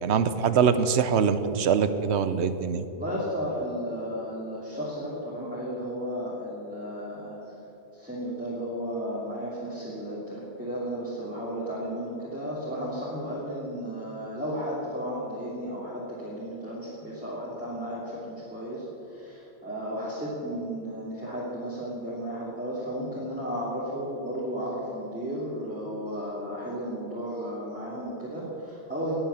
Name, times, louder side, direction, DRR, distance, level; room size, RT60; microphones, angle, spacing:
voice 1, 0.0-2.8, right 6 dB, 85° right, 11 dB, 1.1 m, -23 dB
voice 2, 3.0-7.4 7.9-29.2, equal, 5° right, -8 dB, 3.1 m, -34 dB
19.5 x 9.1 x 7.2 m, 2.9 s
omnidirectional pair, 1.1 m